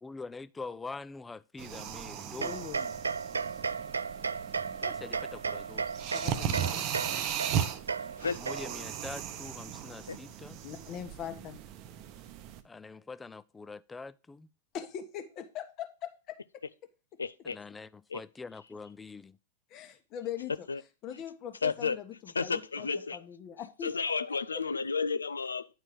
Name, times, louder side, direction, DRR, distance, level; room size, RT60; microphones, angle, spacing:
voice 1, 0.0-2.6 4.8-6.1 8.4-10.6 12.6-14.5 17.4-19.4, left 4 dB, 10° left, 0.4 m, -44 dB
sound 1, 1.6-12.6, right 9 dB, 40° right, 0.8 m, -37 dB
voice 2, 2.4-2.9 6.1-7.2 10.6-11.6 14.7-16.4 19.7-20.7 21.0-23.9 24.3-24.4, left 9 dB, 35° left, 1.3 m, -41 dB
sound 2, 2.4-9.0, right 5 dB, 80° right, 0.3 m, -35 dB
voice 3, 17.2-17.6 18.1-18.2 20.7-20.8 21.6-22.0 22.3-23.2 23.8-25.7, left 5 dB, 80° left, 0.5 m, -32 dB
9.7 x 4.4 x 5.0 m
figure-of-eight pair, 100°, 0 cm